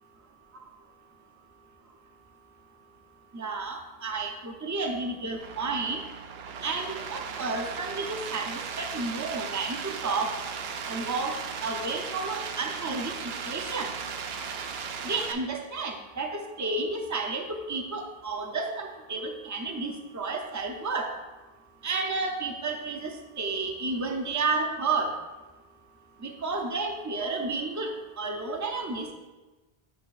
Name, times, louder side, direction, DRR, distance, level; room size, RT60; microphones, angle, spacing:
voice 1, 3.3-6.0 6.6-10.3 10.9-11.3 11.6-13.9 15.0-21.1 21.8-25.1 26.2-27.9 28.2-29.1, right 3 dB, 20° right, 3 dB, 0.5 m, -31 dB
sound 1, 5.3-15.3, right 6 dB, 75° right, 0.8 m, -37 dB
8.6 x 6.3 x 2.5 m, 1.2 s
omnidirectional pair, 1.0 m